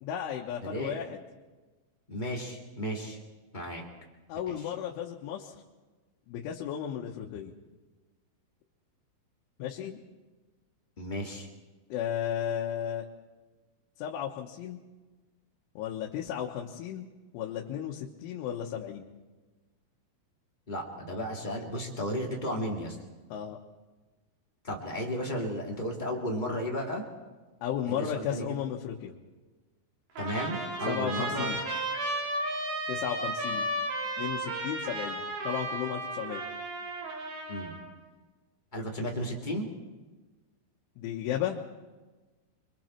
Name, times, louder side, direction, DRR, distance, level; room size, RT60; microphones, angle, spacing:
voice 1, 0.0-1.2 4.3-5.6 6.3-7.5 9.6-10.0 11.9-13.1 14.0-14.8 15.8-17.1 17.3-19.1 23.3-23.6 27.6-29.1 30.9-31.6 32.9-33.7 34.2-36.4 41.0-41.6, left 9 dB, 90° left, -1 dB, 3.7 m, -34 dB
voice 2, 0.6-1.0 2.1-3.2 3.5-3.8 4.5-4.6 11.0-11.5 20.7-23.0 24.6-27.0 27.8-28.4 30.2-31.5 37.5-37.7 38.7-39.7, equal, 25° left, -1 dB, 1.0 m, -34 dB
Trumpet, 30.2-37.8, right 1 dB, 65° right, 5.4 m, -34 dB
27.0 x 23.5 x 4.5 m, 1.3 s
omnidirectional pair, 5.4 m